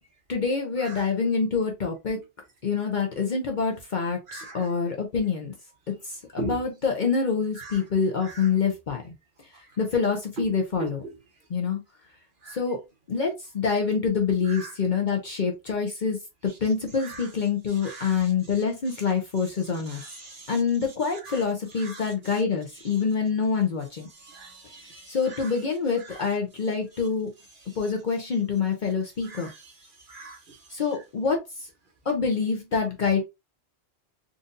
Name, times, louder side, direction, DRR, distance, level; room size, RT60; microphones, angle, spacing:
voice 1, 0.3-2.2 2.6-5.5 6.3-9.1 9.8-11.0 11.5-11.8 12.5-12.8 13.1-16.2 16.6-20.0 20.5-24.1 25.1-27.3 27.8-29.5 30.7-31.4 32.1-33.2, left 5 dB, 50° left, 0.7 m, -26 dB
voice 2, 4.3-4.7 6.4-6.6 7.6-7.8 8.2-8.5 10.4-10.5 10.8-11.1 12.4-12.6 14.5-14.7 17.0-17.3 17.8-18.3 19.9-20.5 21.2-21.4 21.8-22.4 24.2-25.5 26.0-26.2 29.2-29.5 30.1-30.6, right 4 dB, 50° right, 1.1 m, -40 dB
3.8 x 2.6 x 2.5 m
omnidirectional pair, 1.2 m